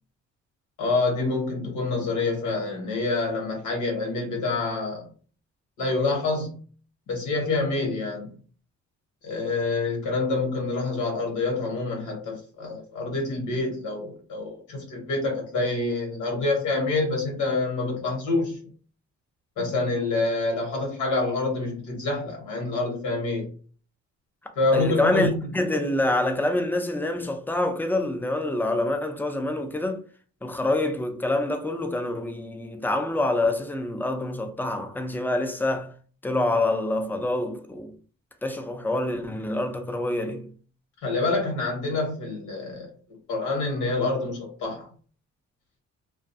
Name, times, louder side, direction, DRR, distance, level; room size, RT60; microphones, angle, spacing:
voice 1, 0.8-5.1 5.8-6.6 7.1-8.4 9.2-18.6 19.6-23.5 24.6-25.4 41.0-42.9 43.3-44.9, left 3 dB, 85° left, 1.1 m, -27 dB
voice 2, 24.7-30.0 30.4-35.9 36.2-37.9 38.4-40.5, left 2 dB, 5° left, 0.4 m, -26 dB
2.3 x 2.3 x 2.6 m
cardioid pair, 90°, 30 cm